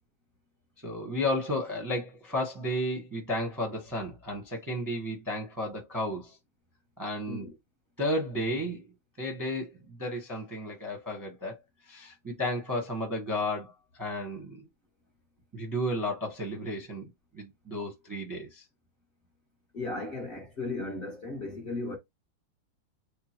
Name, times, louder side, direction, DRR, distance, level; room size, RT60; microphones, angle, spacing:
voice 1, 0.8-6.4 7.0-7.5 8.0-8.9 9.2-11.6 11.8-14.7 15.5-17.1 17.3-18.6, left 1 dB, 15° right, 0.9 m, -33 dB
voice 2, 19.7-22.0, left 2 dB, 35° left, 1.1 m, -36 dB
3.8 x 2.2 x 4.4 m
omnidirectional pair, 2.1 m